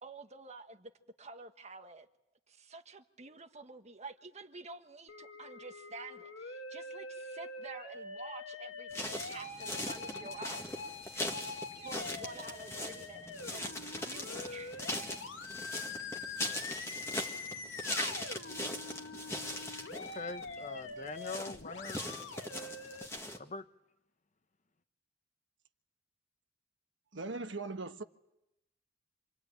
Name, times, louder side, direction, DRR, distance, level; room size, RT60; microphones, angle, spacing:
voice 1, 0.0-0.9 1.2-2.1 2.5-10.8 11.8-14.8, right 3 dB, 35° right, 1.4 m, -49 dB
Musical instrument, 5.1-23.1, left 3 dB, 70° left, 1.7 m, -45 dB
sound 1, 8.9-23.4, left 1 dB, 15° left, 1.8 m, -40 dB
voice 2, 20.0-22.1 23.4-23.7, left 3 dB, 35° left, 1.0 m, -43 dB
voice 3, 27.1-28.0, right 3 dB, 65° right, 1.2 m, -39 dB
27.5 x 22.0 x 8.8 m
head